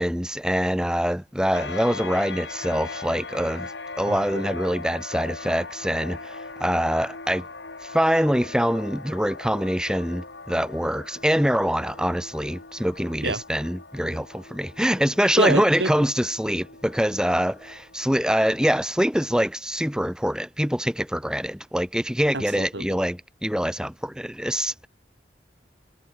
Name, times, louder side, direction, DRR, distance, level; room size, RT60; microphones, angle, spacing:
voice 1, 0.0-3.7 4.0-7.5 7.8-24.9, equal, 5° right, 1.9 m, -24 dB
sound 1, 1.5-18.8, left 3 dB, 80° left, 4.3 m, -40 dB
voice 2, 4.1-4.5 13.2-13.4 15.4-15.9 22.3-22.9, right 2 dB, 80° right, 3.7 m, -26 dB
head